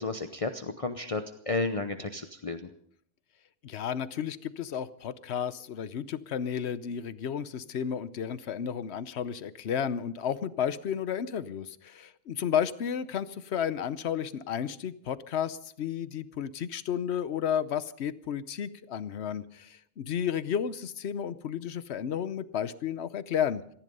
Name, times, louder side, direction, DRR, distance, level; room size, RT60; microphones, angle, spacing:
voice 1, 0.0-2.7, left 3 dB, 35° left, 8 dB, 0.9 m, -32 dB
voice 2, 3.6-23.6, left 8 dB, 80° left, 15 dB, 1.1 m, -32 dB
18.5 x 14.5 x 5.4 m, 0.68 s
omnidirectional pair, 1.1 m